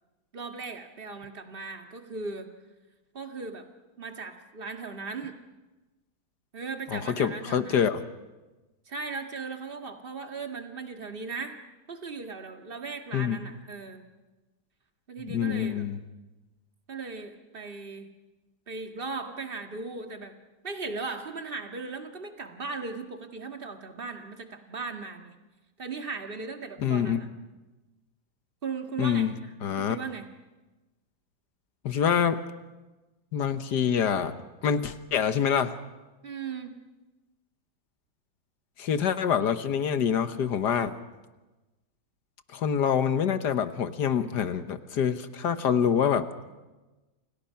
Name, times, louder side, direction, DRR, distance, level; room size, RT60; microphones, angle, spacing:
voice 1, 0.3-2.5 3.1-3.7 4.0-5.4 6.5-7.8 8.9-11.6 11.9-14.1 15.1-15.8 16.9-18.1 18.7-20.4 20.6-25.3 25.8-27.3 28.6-30.3 36.2-36.8, right 4 dB, 30° right, 5 dB, 1.9 m, -37 dB
voice 2, 6.9-8.0 13.1-13.4 15.2-16.0 26.8-27.2 29.0-29.3 29.6-30.0 31.8-32.4 33.3-34.3 34.6-35.8 38.8-40.9 42.5-46.5, left 8 dB, 60° left, 11 dB, 1.6 m, -26 dB
29.0 x 27.5 x 5.8 m, 1.1 s
omnidirectional pair, 2.1 m